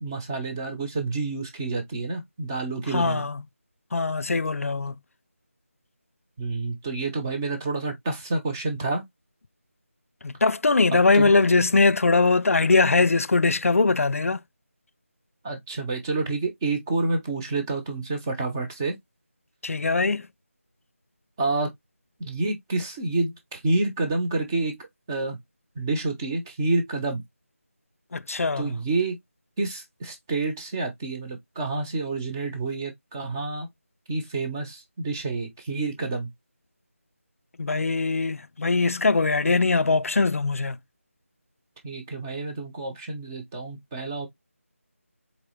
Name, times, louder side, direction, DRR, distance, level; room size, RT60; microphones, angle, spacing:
voice 1, 0.0-3.3 6.4-9.0 11.1-11.3 15.4-19.0 21.4-21.7 22.2-24.8 25.1-25.4 25.8-27.2 28.6-29.2 29.6-33.7 34.1-36.3 41.8-44.3, right 3 dB, 15° right, 0.8 m, -28 dB
voice 2, 2.9-3.3 3.9-4.9 10.2-14.4 19.6-20.3 28.1-28.7 37.6-40.8, left 3 dB, 70° left, 0.4 m, -21 dB
4.2 x 3.3 x 3.1 m
figure-of-eight pair, 165°, 8 cm